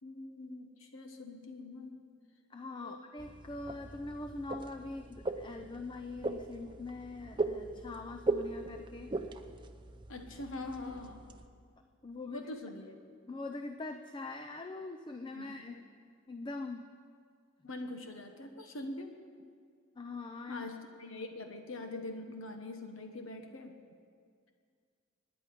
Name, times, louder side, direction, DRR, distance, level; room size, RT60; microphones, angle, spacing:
voice 1, 0.0-2.0 2.8-3.0 10.1-11.2 12.3-13.0 15.3-15.8 17.6-19.2 20.5-23.7, left 2 dB, 75° left, 5 dB, 1.3 m, -43 dB
voice 2, 2.5-9.2 12.0-12.5 13.3-15.8 16.3-16.9 19.4-19.5 20.0-20.7, left 3 dB, 25° left, 6 dB, 0.5 m, -43 dB
sound 1, 3.2-11.5, right 3 dB, 25° right, 0.7 m, -39 dB
25.0 x 10.0 x 5.3 m, 2.1 s
head